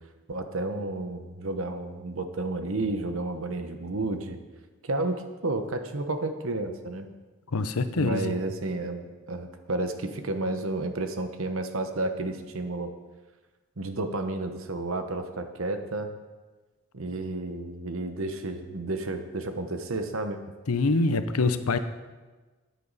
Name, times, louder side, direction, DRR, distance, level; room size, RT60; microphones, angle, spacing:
voice 1, 0.3-4.4 4.8-7.1 8.0-12.9 13.8-16.1 16.9-20.4, right 2 dB, 65° right, 7 dB, 1.0 m, -31 dB
voice 2, 7.5-8.3 20.7-21.8, left 3 dB, 85° left, 10 dB, 0.7 m, -25 dB
13.5 x 9.3 x 4.1 m, 1.3 s
head